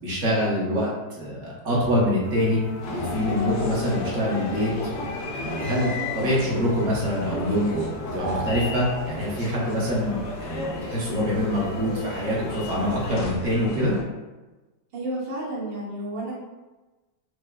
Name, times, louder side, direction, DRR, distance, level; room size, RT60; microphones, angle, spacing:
voice 1, 0.0-2.6 2.9-7.8 8.1-13.9, equal, 50° right, -6 dB, 1.1 m, -25 dB
sound 1, 2.2-13.1, left 1 dB, 65° left, 0.6 m, -42 dB
sound 2, 2.8-14.0, left 2 dB, 80° left, 1.2 m, -34 dB
sound 3, 8.2-9.7, right 3 dB, 70° right, 1.2 m, -34 dB
voice 2, 14.9-16.3, right 1 dB, 90° right, -6 dB, 1.6 m, -31 dB
4.6 x 2.0 x 2.2 m, 1.2 s
omnidirectional pair, 1.9 m